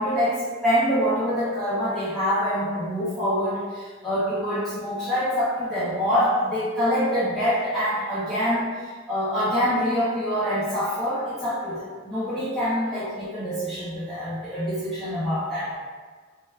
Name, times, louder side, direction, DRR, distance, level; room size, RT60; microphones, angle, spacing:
voice 1, 0.0-15.7, equal, ahead, -14 dB, 0.5 m, -25 dB
3.1 x 2.2 x 2.2 m, 1.5 s
head